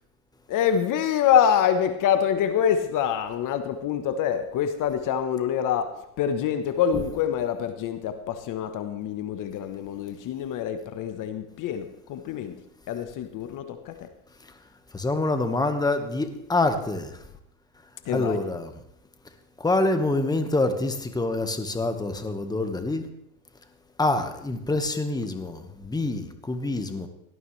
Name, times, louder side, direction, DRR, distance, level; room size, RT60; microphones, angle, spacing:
voice 1, 0.5-12.6 12.9-14.1 18.0-18.4, left 8 dB, 45° left, 1.2 m, -26 dB
voice 2, 14.9-17.2 18.1-18.7 19.6-23.1 24.0-27.1, left 2 dB, 10° left, 1.4 m, -26 dB
17.5 x 13.0 x 3.3 m
hypercardioid pair, 100°, 43 cm